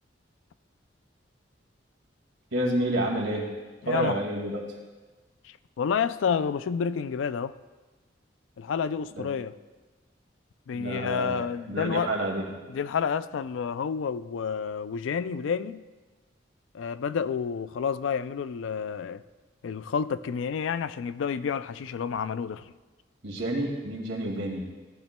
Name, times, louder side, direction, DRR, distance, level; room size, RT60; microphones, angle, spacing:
voice 1, 2.5-3.5 3.9-4.6 9.2-9.3 10.7-12.5 23.2-24.7, right 1 dB, 85° right, 2.1 m, -29 dB
voice 2, 3.8-4.2 5.4-7.6 8.6-9.6 10.7-12.1 12.7-15.8 16.7-19.2 19.6-22.7, left 6 dB, 85° left, 0.3 m, -29 dB
15.0 x 12.0 x 2.2 m
head